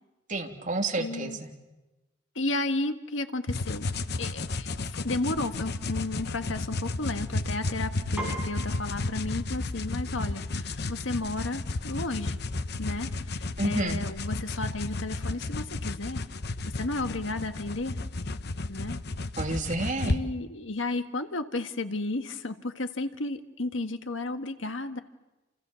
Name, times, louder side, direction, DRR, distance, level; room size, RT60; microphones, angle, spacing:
voice 1, 0.3-1.5 13.6-14.0 19.4-20.2, right 2 dB, 45° right, 2 dB, 3.2 m, -30 dB
voice 2, 1.0-1.4 2.3-3.9 4.2-12.4 12.8-16.3 16.7-18.0 18.7-19.0 20.1-25.0, left 2 dB, 85° left, 8 dB, 1.7 m, -33 dB
sound 1, 3.5-20.2, left 2 dB, 60° left, 0.9 m, -33 dB
Piano, 8.2-17.8, right 1 dB, 5° right, 7.8 m, -47 dB
29.0 x 29.0 x 7.1 m, 1.0 s
head